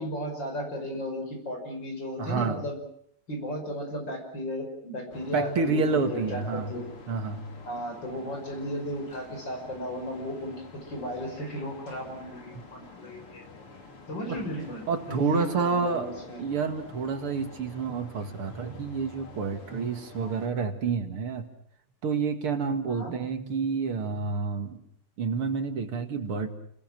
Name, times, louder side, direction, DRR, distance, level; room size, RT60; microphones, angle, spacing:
voice 1, 0.0-2.8 3.3-6.8 7.7-13.4 14.1-14.8 15.1-16.4 20.2-20.4 22.9-23.2, equal, 55° left, 3 dB, 6.6 m, -35 dB
voice 2, 2.2-2.6 5.3-6.7 7.1-7.5 14.3-14.4 14.9-16.1 16.4-21.5 22.0-24.8 25.2-26.5, right 5 dB, 80° right, 7 dB, 2.9 m, -29 dB
sound 1, 5.1-20.5, left 3 dB, 85° left, 4.3 m, -48 dB
29.5 x 21.0 x 6.1 m, 0.65 s
omnidirectional pair, 2.4 m